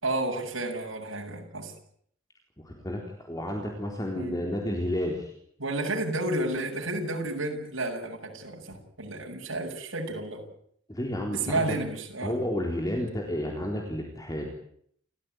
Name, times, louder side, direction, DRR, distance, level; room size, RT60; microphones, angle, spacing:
voice 1, 0.0-1.7 4.1-4.4 5.6-10.4 11.3-12.3, right 2 dB, 85° right, 1 dB, 7.5 m, -31 dB
voice 2, 2.6-5.3 10.9-11.8 12.2-14.6, left 1 dB, 20° left, 1 dB, 4.1 m, -31 dB
29.5 x 16.0 x 9.5 m, 0.67 s
head